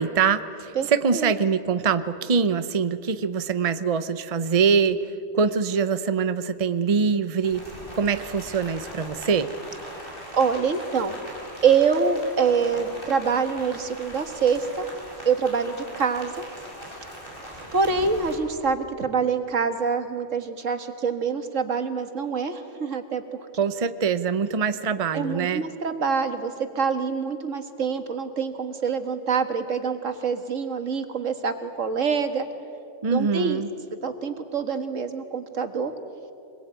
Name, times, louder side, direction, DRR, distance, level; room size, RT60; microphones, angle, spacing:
voice 1, 0.0-9.5 23.6-25.6 33.0-33.7, right 6 dB, 30° right, 11 dB, 0.8 m, -24 dB
voice 2, 0.8-1.3 10.3-11.2 11.6-14.9 15.3-16.3 17.7-23.5 25.1-32.5 33.1-33.6 34.0-35.9, right 5 dB, 85° right, 8 dB, 2.0 m, -25 dB
Rain, 7.4-18.3, equal, 45° left, 6.7 m, -40 dB
26.5 x 21.0 x 9.1 m, 2.6 s
omnidirectional pair, 1.3 m